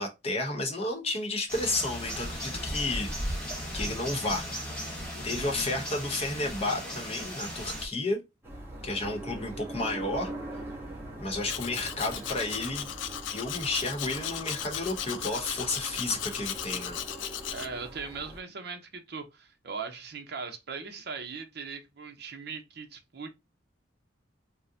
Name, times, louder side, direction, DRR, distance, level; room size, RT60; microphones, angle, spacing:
voice 1, 0.0-3.1 3.7-4.4 5.2-8.2 8.8-10.3 11.2-12.9 13.3-17.5, left 2 dB, 35° left, 0.9 m, -32 dB
sound 1, 1.5-7.9, equal, 5° left, 1.2 m, -36 dB
voice 2, 5.3-5.8 17.5-23.3, right 5 dB, 60° right, 0.7 m, -40 dB
sound 2, 8.4-18.4, right 1 dB, 15° right, 0.9 m, -42 dB
Domestic sounds home sounds, 11.5-17.7, left 10 dB, 75° left, 0.4 m, -36 dB
3.6 x 2.1 x 2.7 m
head